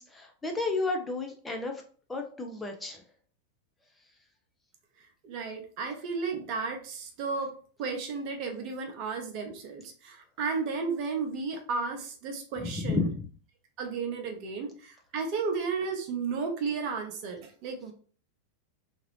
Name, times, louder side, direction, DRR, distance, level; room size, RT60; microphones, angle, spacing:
voice 1, 0.0-1.8 2.1-3.0 12.6-13.3, left 3 dB, 10° left, 2 dB, 0.5 m, -32 dB
voice 2, 5.2-7.5 7.8-13.1 13.8-17.9, right 4 dB, 40° right, 3 dB, 0.7 m, -33 dB
2.9 x 2.5 x 3.0 m, 0.43 s
figure-of-eight pair, 90°, 0 cm